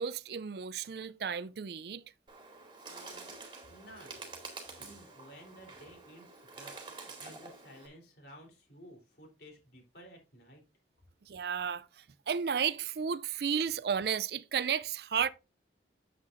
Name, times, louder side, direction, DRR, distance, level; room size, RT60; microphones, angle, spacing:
voice 1, 0.0-2.0 11.3-11.8 12.3-15.3, right 7 dB, 60° right, 0.4 m, -33 dB
Bird, 2.3-7.9, right 3 dB, 25° right, 2.4 m, -48 dB
voice 2, 2.9-3.3 3.7-4.2 4.8-10.6, equal, 60° left, 3.5 m, -54 dB
9.6 x 7.9 x 2.6 m
head